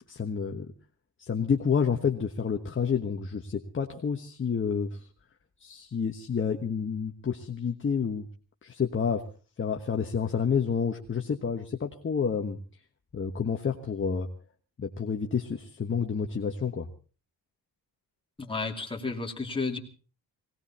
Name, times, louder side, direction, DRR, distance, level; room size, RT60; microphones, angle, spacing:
voice 1, 0.1-0.7 1.2-5.0 5.6-8.3 8.6-9.2 9.6-12.6 13.1-14.3 14.8-16.9, left 6 dB, 30° left, 3 dB, 1.3 m, -29 dB
voice 2, 18.4-19.8, left 3 dB, 15° left, 1 dB, 2.8 m, -32 dB
19.0 x 18.0 x 4.3 m, 0.37 s
cardioid pair, 120°, 38 cm